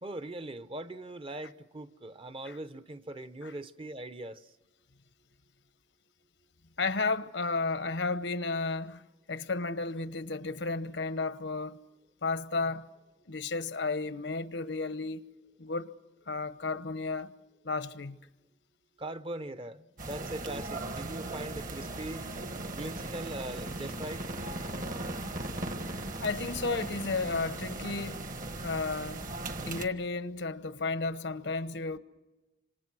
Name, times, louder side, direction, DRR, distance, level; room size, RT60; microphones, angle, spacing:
voice 1, 0.0-4.5 19.0-22.3 22.7-24.2, right 1 dB, 30° right, 0.8 m, -40 dB
voice 2, 6.8-9.0 9.3-11.8 12.2-12.9 13.3-15.2 15.6-15.9 16.3-17.3 17.6-18.2 26.2-28.2 28.6-29.2 29.6-32.0, left 3 dB, 80° left, 1.0 m, -33 dB
sound 1, 20.0-29.9, right 2 dB, 50° right, 1.5 m, -38 dB
27.0 x 26.5 x 6.2 m
head